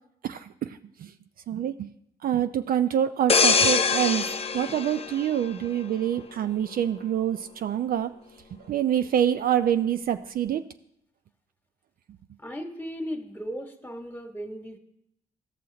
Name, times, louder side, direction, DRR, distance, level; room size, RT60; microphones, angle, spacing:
voice 1, 0.2-1.1 1.5-1.9 2.2-4.3 4.5-8.1 8.7-10.6, right 10 dB, 60° right, 10 dB, 0.4 m, -26 dB
sound 1, 3.3-6.0 6.4-6.7, left 5 dB, 35° left, 0.6 m, -24 dB
voice 2, 12.4-14.8, equal, 10° left, 5 dB, 1.5 m, -36 dB
14.0 x 6.2 x 2.8 m, 0.75 s
supercardioid pair, 50°, 17 cm